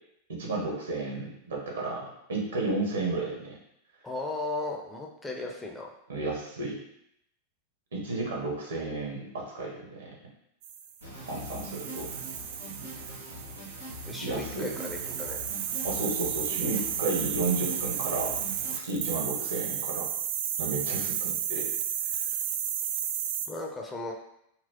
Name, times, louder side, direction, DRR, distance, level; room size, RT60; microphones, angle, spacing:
voice 1, 0.3-3.6 6.1-6.8 7.9-10.1 11.2-12.1 14.2-14.7 15.8-18.4 18.7-20.1 20.6-21.7, right 2 dB, 65° right, -2 dB, 0.9 m, -32 dB
voice 2, 4.0-5.9 14.0-15.4 23.5-24.1, left 2 dB, 10° left, 0 dB, 0.5 m, -36 dB
sound 1, 10.6-23.5, right 9 dB, 50° right, 0.3 m, -33 dB
sound 2, 11.0-18.8, equal, 85° left, 1.0 m, -43 dB
4.2 x 2.0 x 2.8 m, 0.78 s
figure-of-eight pair, 90°, 0 cm